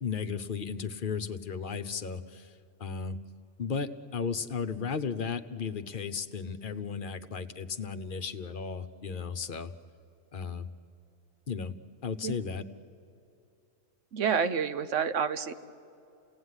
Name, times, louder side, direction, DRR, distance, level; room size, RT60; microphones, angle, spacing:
voice 1, 0.0-2.5 2.8-3.2 3.6-9.7 10.3-10.7 11.5-11.7 12.0-12.6, left 6 dB, 45° left, 8 dB, 0.9 m, -35 dB
voice 2, 14.1-15.5, right 6 dB, 65° right, 11 dB, 1.2 m, -28 dB
28.0 x 17.5 x 9.7 m, 2.6 s
omnidirectional pair, 1.4 m